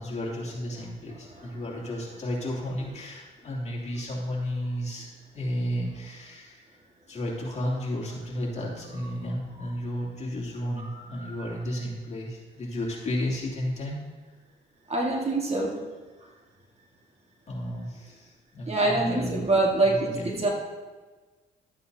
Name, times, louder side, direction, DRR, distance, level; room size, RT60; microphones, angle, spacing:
voice 1, 0.0-5.1 5.3-6.7 7.1-14.0 17.5-19.5 19.8-20.4, left 1 dB, 35° left, -4 dB, 2.6 m, -33 dB
voice 2, 14.9-15.8 18.7-20.5, right 2 dB, 30° right, -1 dB, 1.7 m, -25 dB
12.5 x 8.2 x 2.7 m, 1.3 s
cardioid pair, 90°, 20 cm